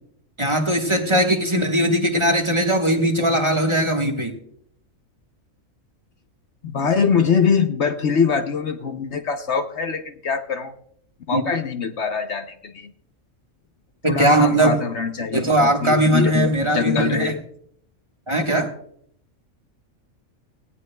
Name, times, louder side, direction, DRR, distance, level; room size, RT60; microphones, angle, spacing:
voice 1, 0.4-4.3 11.3-11.4 14.0-14.8 15.3-17.3 18.3-18.7, right 1 dB, 25° right, 3 dB, 1.3 m, -19 dB
voice 2, 6.6-10.7 11.3-12.9 14.1-17.4, left 6 dB, 60° left, 8 dB, 1.0 m, -23 dB
18.5 x 16.5 x 2.2 m, 0.68 s
omnidirectional pair, 1.4 m